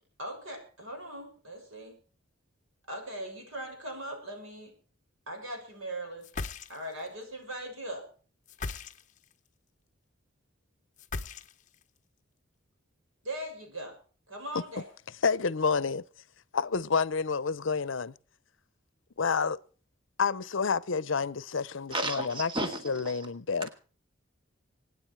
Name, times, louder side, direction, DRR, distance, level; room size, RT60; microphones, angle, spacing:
voice 1, 0.2-1.9 2.9-4.7 5.3-6.3 6.7-8.0 13.2-14.0 14.3-14.9, right 1 dB, 90° right, 6.7 m, -39 dB
sound 1, 6.2-7.1 8.5-9.3 11.0-11.8, left 3 dB, 35° left, 0.8 m, -38 dB
voice 2, 15.2-16.0 16.5-18.1 19.2-19.6 20.2-22.5 22.8-23.7, left 5 dB, 70° left, 0.7 m, -29 dB
voice 3, 21.9-23.3 23.6-23.7, right 1 dB, 25° right, 2.0 m, -34 dB
24.5 x 9.8 x 4.6 m
head